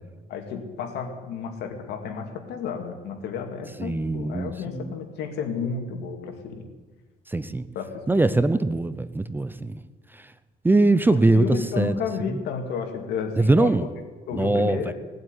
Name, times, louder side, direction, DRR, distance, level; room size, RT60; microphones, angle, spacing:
voice 1, 0.3-6.6 7.7-8.4 11.1-13.7 14.3-14.9, left 6 dB, 75° left, 4 dB, 2.6 m, -32 dB
voice 2, 3.8-4.9 7.3-7.7 8.1-9.8 10.6-12.0 13.4-13.9 14.3-14.9, right 2 dB, 10° right, 14 dB, 0.6 m, -22 dB
18.0 x 7.9 x 10.0 m, 1.4 s
cardioid pair, 110°, 17 cm